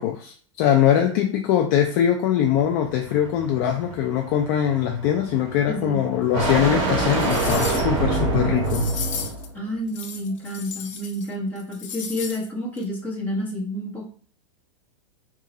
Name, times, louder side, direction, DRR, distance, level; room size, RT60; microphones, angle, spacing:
voice 1, 0.0-8.9, left 10 dB, 35° left, 0.4 m, -22 dB
sound 1, 2.5-9.5, right 3 dB, 35° right, 1.3 m, -26 dB
voice 2, 5.7-6.0 9.5-14.1, equal, 10° left, 1.3 m, -29 dB
sound 2, 6.5-6.6 7.0-8.0 8.6-9.5 9.9-11.3 11.6-12.4 12.8-12.9, left 6 dB, 80° left, 0.8 m, -35 dB
3.7 x 2.5 x 4.1 m
supercardioid pair, 155°, 17 cm